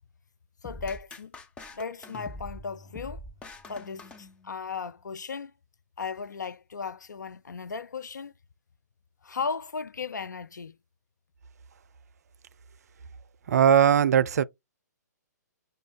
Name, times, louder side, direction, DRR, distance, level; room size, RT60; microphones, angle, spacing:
voice 1, 0.6-1.4 1.7-3.2 3.7-5.5 6.0-8.3 9.2-10.8, left 5 dB, 80° left, 0.4 m, -36 dB
sound 1, 0.6-4.8, left 2 dB, 10° left, 0.5 m, -44 dB
voice 2, 13.5-14.4, right 8 dB, 60° right, 0.4 m, -19 dB
5.0 x 2.2 x 3.2 m
figure-of-eight pair, 125°, 10 cm